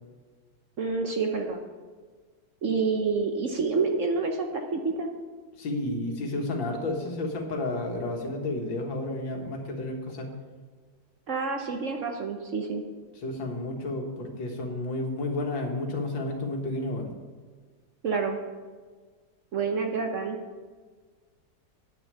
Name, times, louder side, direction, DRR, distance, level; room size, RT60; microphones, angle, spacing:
voice 1, 0.8-1.6 2.6-5.1 11.3-12.8 18.0-18.4 19.5-20.4, right 4 dB, 55° right, 4 dB, 0.9 m, -28 dB
voice 2, 5.6-10.3 13.2-17.1, left 2 dB, 90° left, 2 dB, 2.2 m, -31 dB
9.1 x 6.1 x 8.1 m, 1.5 s
omnidirectional pair, 2.0 m